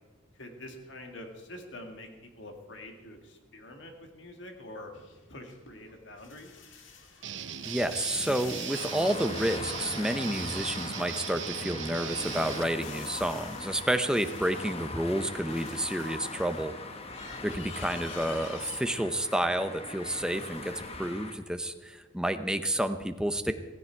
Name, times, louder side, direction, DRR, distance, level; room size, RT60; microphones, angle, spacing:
voice 1, 0.3-4.9 5.3-6.6, left 1 dB, 65° left, 4 dB, 2.1 m, -46 dB
sound 1, 4.9-11.9 12.3-16.6 17.0-18.8, left 5 dB, 80° left, 1.9 m, -50 dB
Guitar, 7.2-12.6, right 9 dB, 65° right, 0.8 m, -38 dB
voice 2, 7.6-16.7 17.4-23.5, right 1 dB, 5° right, 8 dB, 0.7 m, -30 dB
sound 2, 8.7-21.3, left 3 dB, 30° left, 1.2 m, -41 dB
16.0 x 15.0 x 4.6 m, 1.2 s
head